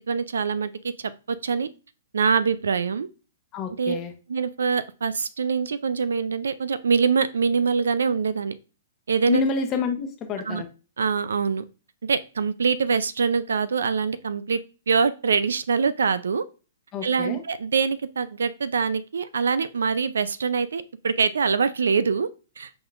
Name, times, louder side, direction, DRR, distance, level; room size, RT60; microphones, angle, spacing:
voice 1, 0.1-1.7 2.1-3.1 3.8-4.0 4.3-8.5 9.1-9.4 10.5-10.6 11.0-11.6 12.0-14.6 14.9-16.4 17.0-22.3 22.6-22.7, right 5 dB, 85° right, 15 dB, 0.4 m, -24 dB
voice 2, 3.5-4.1 9.3-10.7 16.9-17.4, left 5 dB, 30° left, 5 dB, 0.9 m, -28 dB
4.8 x 4.0 x 2.4 m, 0.34 s
hypercardioid pair, 130°, 0 cm